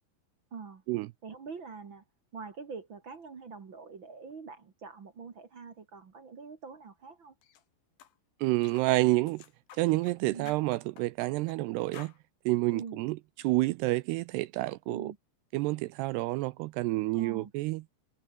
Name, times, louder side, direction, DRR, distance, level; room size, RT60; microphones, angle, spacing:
voice 1, 0.5-0.8 1.2-2.0 2.3-7.3 10.3-10.6 12.7-13.0 14.9-15.2 17.1-17.5, right 5 dB, 45° right, 1.6 m, -44 dB
sound 1, 7.4-7.6 8.0-8.1 8.6-8.9 9.3-10.2 10.5-11.6 11.9-12.2, left 10 dB, 60° left, 3.6 m, -52 dB
voice 2, 8.4-9.4 9.8-12.1 12.5-13.2 13.4-15.1 15.5-17.8, right 20 dB, 80° right, 2.4 m, -29 dB
omnidirectional pair, 5.2 m